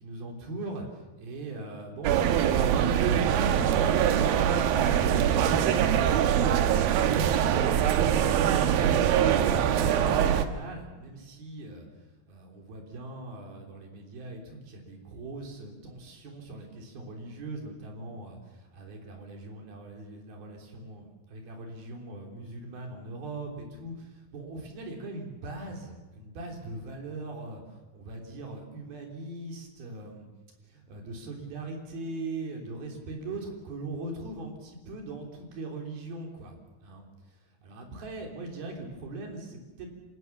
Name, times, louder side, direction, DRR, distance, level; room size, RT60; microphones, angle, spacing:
voice 1, 0.0-11.9 12.3-30.3 30.6-39.9, right 2 dB, 55° right, 2 dB, 4.9 m, -40 dB
sound 1, 2.0-10.4, right 9 dB, 70° right, 2.4 m, -23 dB
27.5 x 17.5 x 7.0 m, 1.2 s
omnidirectional pair, 5.4 m